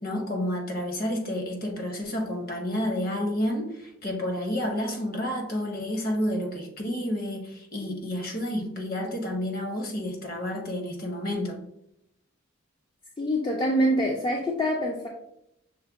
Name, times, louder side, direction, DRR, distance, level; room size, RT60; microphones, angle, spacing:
voice 1, 0.0-11.6, left 1 dB, 45° left, 2 dB, 0.9 m, -30 dB
voice 2, 13.2-15.1, equal, 25° left, 0 dB, 0.4 m, -25 dB
6.2 x 2.2 x 3.5 m, 0.78 s
head